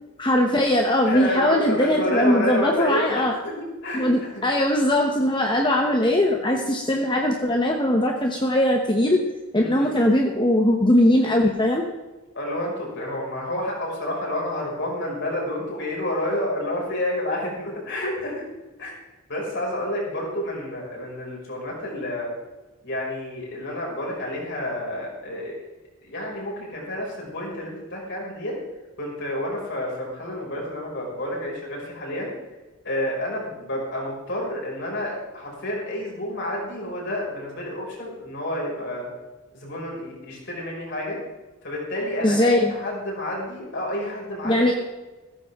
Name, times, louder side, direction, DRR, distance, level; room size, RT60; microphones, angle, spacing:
voice 1, 0.2-3.3 3.9-9.2 9.5-11.8 42.2-42.7 44.4-44.7, left 1 dB, 20° left, 2 dB, 1.0 m, -20 dB
voice 2, 1.0-3.5 3.8-4.3 9.5-10.1 12.3-18.5 18.8-18.9 19.3-22.3 22.8-25.5 26.0-28.5 29.0-32.3 32.8-39.1 39.5-41.2 41.6-44.7, left 1 dB, 55° left, -3 dB, 5.8 m, -29 dB
16.0 x 14.0 x 3.7 m, 1.2 s
head